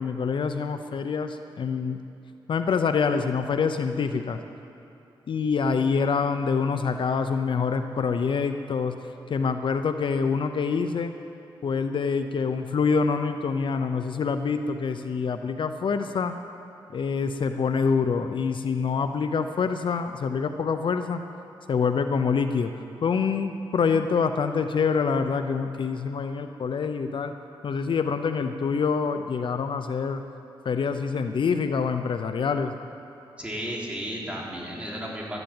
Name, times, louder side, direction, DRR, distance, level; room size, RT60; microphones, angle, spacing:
voice 1, 0.0-2.0 2.5-4.4 5.3-9.0 9.3-11.1 11.6-16.3 16.9-21.2 21.7-22.7 23.0-27.3 27.6-30.2 30.6-32.7, left 5 dB, 60° left, 8 dB, 0.7 m, -26 dB
voice 2, 33.4-35.4, equal, 15° right, -4 dB, 3.6 m, -33 dB
13.0 x 11.0 x 8.9 m, 2.7 s
cardioid pair, 90°, 9 cm